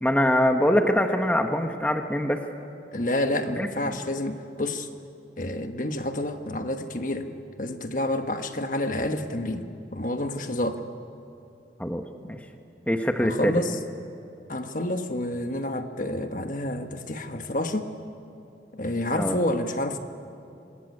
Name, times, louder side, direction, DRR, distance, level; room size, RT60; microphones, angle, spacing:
voice 1, 0.0-2.4 3.6-3.9 11.8-12.4 12.9-13.6 19.1-19.4, equal, 10° left, 5 dB, 1.1 m, -24 dB
voice 2, 2.9-4.9 5.4-7.3 7.6-10.8 13.2-13.8 14.5-17.9 18.7-20.0, left 1 dB, 45° left, 6 dB, 1.4 m, -29 dB
26.0 x 21.0 x 9.7 m, 2.8 s
head